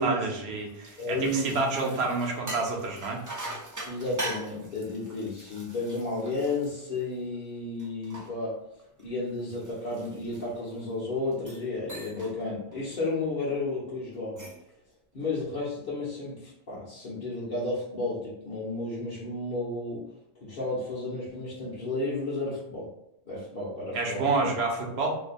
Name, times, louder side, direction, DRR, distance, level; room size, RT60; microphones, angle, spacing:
voice 1, 0.0-3.2 23.9-25.2, right 3 dB, 70° right, 1 dB, 1.0 m, -28 dB
sound 1, 0.5-7.3 7.8-10.8 11.3-11.6 11.9-12.4 12.7-13.0 14.1-14.7, right 1 dB, 25° right, 0.4 m, -42 dB
voice 2, 1.0-1.5 3.9-8.7 9.0-14.5 15.1-20.0 20.3-22.9 23.3-24.5, left 2 dB, 50° left, -9 dB, 1.1 m, -32 dB
2.8 x 2.2 x 4.1 m, 0.80 s
omnidirectional pair, 1.1 m